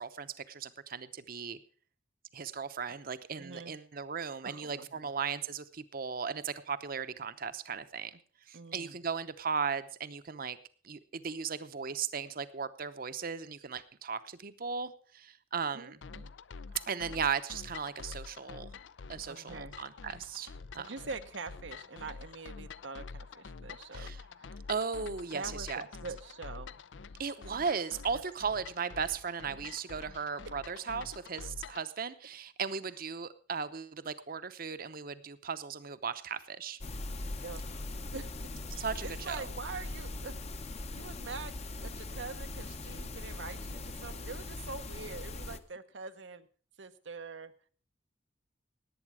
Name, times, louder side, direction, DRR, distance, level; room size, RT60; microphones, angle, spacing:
voice 1, 0.0-1.6 2.3-8.2 8.5-10.6 10.8-16.0 16.9-18.7 19.1-20.9 23.9-24.2 24.7-25.9 27.2-36.8 38.8-39.4, right 6 dB, 50° right, 12 dB, 0.8 m, -37 dB
voice 2, 3.4-3.8 4.4-5.1 8.5-9.0 15.7-16.3 19.1-19.8 20.8-24.6 25.3-26.8 28.1-28.2 29.6-29.8 37.4-38.3 38.7-40.4 40.9-46.5 46.8-47.5, right 4 dB, 90° right, 9 dB, 1.0 m, -44 dB
sound 1, 16.0-31.9, left 4 dB, 85° left, 0.5 m, -47 dB
sound 2, 36.8-45.6, left 2 dB, 35° left, 0.8 m, -41 dB
18.5 x 8.6 x 4.8 m, 0.42 s
head